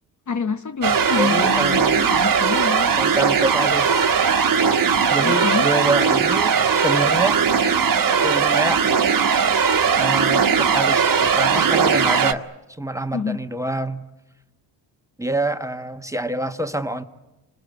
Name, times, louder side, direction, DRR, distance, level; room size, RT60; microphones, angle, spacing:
voice 1, 0.3-3.0 5.2-5.7 13.1-13.4, left 6 dB, 40° left, 1.2 m, -27 dB
sound 1, 0.8-12.3, right 6 dB, 45° right, 1.5 m, -19 dB
voice 2, 1.2-2.0 3.0-4.1 5.1-7.4 8.2-8.8 10.0-12.5 12.8-14.0 15.2-17.0, right 2 dB, 5° right, 1.3 m, -26 dB
28.5 x 20.5 x 8.1 m
supercardioid pair, 60°, 46 cm